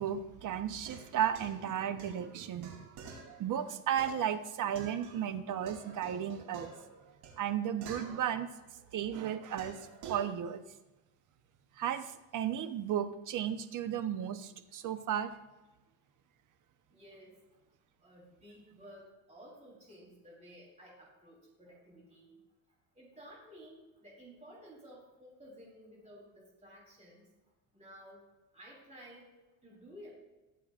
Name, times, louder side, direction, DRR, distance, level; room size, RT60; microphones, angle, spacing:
voice 1, 0.0-2.7 3.4-6.7 7.4-8.5 8.9-9.8 10.1-10.6 11.8-15.3, right 9 dB, 50° right, 9 dB, 1.0 m, -34 dB
sound 1, 0.7-5.3 5.7-8.9 9.6-10.3, right 5 dB, 80° right, 3.5 m, -50 dB
voice 2, 16.9-17.4 18.0-22.3 23.0-27.2 27.7-28.2 28.5-29.3 29.6-30.1, equal, 15° right, -4 dB, 3.9 m, -54 dB
21.0 x 7.7 x 2.5 m, 1.1 s
cardioid pair, 115°, 40 cm